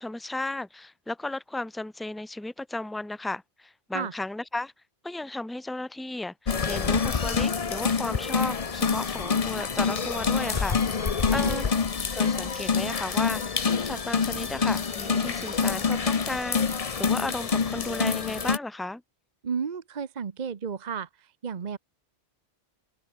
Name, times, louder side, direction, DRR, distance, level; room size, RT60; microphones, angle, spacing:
voice 1, 0.0-4.7 5.0-11.7 12.1-19.0, left 2 dB, ahead, 0.4 m, -34 dB
sound 1, 6.5-18.6, left 5 dB, 35° left, 0.9 m, -26 dB
voice 2, 11.2-11.7 19.4-21.8, right 6 dB, 45° right, 0.9 m, -33 dB
open air
omnidirectional pair, 1.1 m